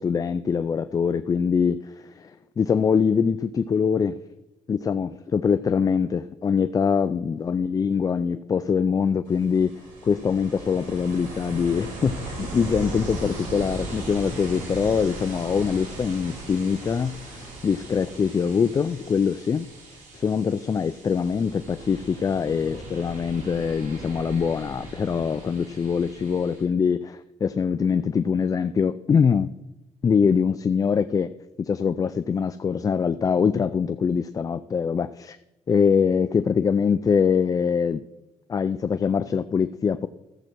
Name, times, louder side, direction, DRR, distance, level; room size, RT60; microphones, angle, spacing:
voice 1, 0.0-4.2 4.7-9.7 10.0-19.7 20.1-29.5 30.0-31.3 31.6-35.4 35.7-38.0 38.5-40.1, left 6 dB, 30° left, 12 dB, 0.3 m, -23 dB
Ocean, 9.3-26.6, right 2 dB, 85° right, 3.0 m, -38 dB
14.0 x 7.5 x 4.5 m, 1.0 s
cardioid pair, 120°, 13 cm